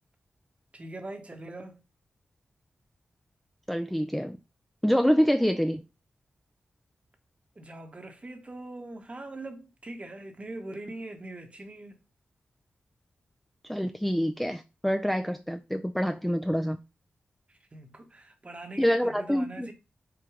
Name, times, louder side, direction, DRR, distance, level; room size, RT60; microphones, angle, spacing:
voice 1, 0.7-1.8 7.5-12.0 17.5-19.7, right 2 dB, 35° right, 1.1 m, -42 dB
voice 2, 3.7-4.4 4.8-5.8 13.7-16.8 18.8-19.7, equal, 5° left, 0.4 m, -26 dB
4.8 x 2.2 x 4.9 m
cardioid pair, 60°, 4 cm